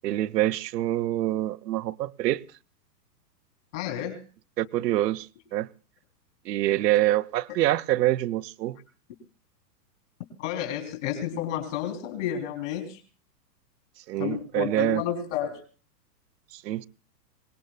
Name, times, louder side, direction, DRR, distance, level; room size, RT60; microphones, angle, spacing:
voice 1, 0.0-2.4 4.6-5.7 6.5-8.8 14.1-15.0 16.5-16.9, right 14 dB, 75° right, 0.6 m, -26 dB
voice 2, 3.7-4.2 10.4-13.0 14.2-15.6, left 10 dB, 45° left, 3.6 m, -31 dB
26.0 x 19.0 x 2.3 m
hypercardioid pair, 160°, 50 cm